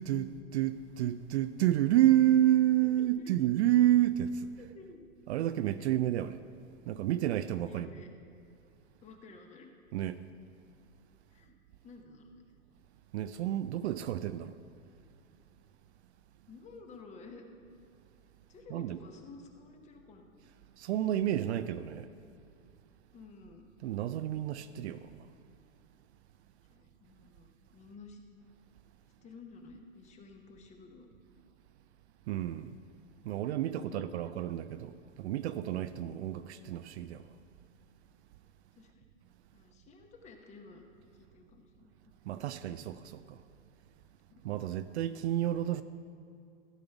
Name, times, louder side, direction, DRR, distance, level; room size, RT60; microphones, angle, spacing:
voice 1, 0.0-4.5 5.3-6.4 6.9-7.9 9.9-10.2 13.1-14.5 18.7-19.0 20.8-22.1 23.8-25.1 32.3-32.7 33.2-37.2 42.3-43.4 44.4-45.8, right 12 dB, 55° right, 0.5 m, -29 dB
voice 2, 4.6-5.0 5.8-5.9 7.7-8.1 9.0-9.7 11.3-11.5 11.8-12.4 16.5-17.4 18.5-20.3 23.1-23.7 26.7-28.2 29.2-31.1 33.4-34.6 36.2-36.4 38.8-39.1 39.5-40.9 41.1-42.1 44.3-44.6, left 4 dB, 15° left, 0.9 m, -53 dB
14.5 x 5.2 x 7.1 m
hypercardioid pair, 140°, 40 cm